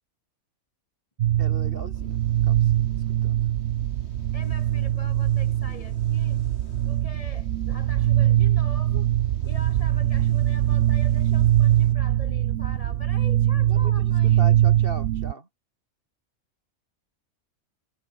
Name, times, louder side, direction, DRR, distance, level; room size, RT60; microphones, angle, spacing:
sound 1, 1.2-15.3, right 12 dB, 70° right, 1.0 m, -22 dB
voice 1, 1.4-3.4 13.7-15.5, right 3 dB, 40° right, 2.7 m, -39 dB
sound 2, 1.9-11.9, left 3 dB, 50° left, 3.3 m, -52 dB
voice 2, 4.3-6.4 6.8-9.1 9.4-14.6, left 1 dB, 25° left, 2.2 m, -43 dB
omnidirectional pair, 1.5 m